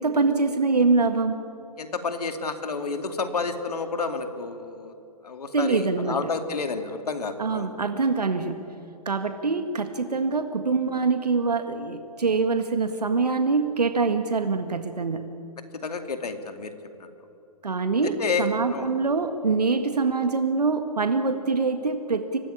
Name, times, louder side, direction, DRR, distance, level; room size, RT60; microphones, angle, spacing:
voice 1, 0.0-1.4 5.5-6.3 7.4-8.6 9.1-15.3 17.6-22.4, right 4 dB, 85° right, 7 dB, 1.7 m, -24 dB
voice 2, 1.8-4.9 5.2-7.7 15.8-16.7 18.2-18.9, left 4 dB, 80° left, 7 dB, 2.7 m, -30 dB
25.5 x 18.5 x 10.0 m, 2.8 s
hypercardioid pair, 130°, 20 cm